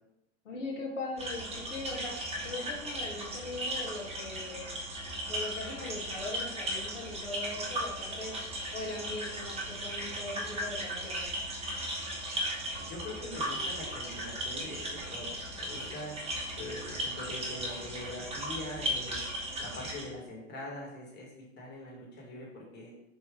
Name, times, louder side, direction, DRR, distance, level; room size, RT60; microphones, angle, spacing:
voice 1, 0.4-2.1 2.4-4.7 5.3-8.3 8.7-11.3, left 2 dB, 80° left, -1 dB, 0.8 m, -40 dB
sound 1, 1.2-20.0, right 1 dB, 15° right, 0.8 m, -37 dB
voice 2, 12.8-16.2 16.6-19.2 19.6-22.9, left 1 dB, 30° left, -2 dB, 1.2 m, -43 dB
3.5 x 2.5 x 3.5 m, 0.89 s
figure-of-eight pair, 95°, 36 cm